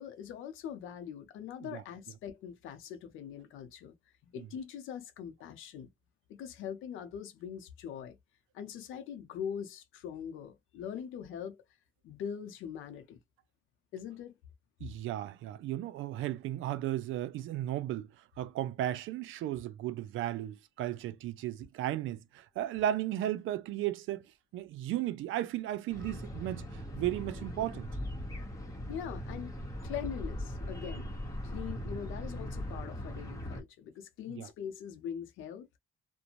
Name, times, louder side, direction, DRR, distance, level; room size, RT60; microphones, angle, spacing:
voice 1, 0.0-3.9 4.2-5.9 6.3-8.2 8.5-11.6 12.0-13.2 13.9-14.3 28.9-29.5 29.8-31.1 31.4-35.7, left 8 dB, 90° left, 0.6 m, -42 dB
voice 2, 14.8-18.1 18.4-24.3 24.5-27.9 34.3-34.5, right 13 dB, 80° right, 0.4 m, -35 dB
sound 1, 25.9-33.6, equal, 15° left, 1.0 m, -40 dB
2.5 x 2.1 x 2.9 m
cardioid pair, 90°, 20 cm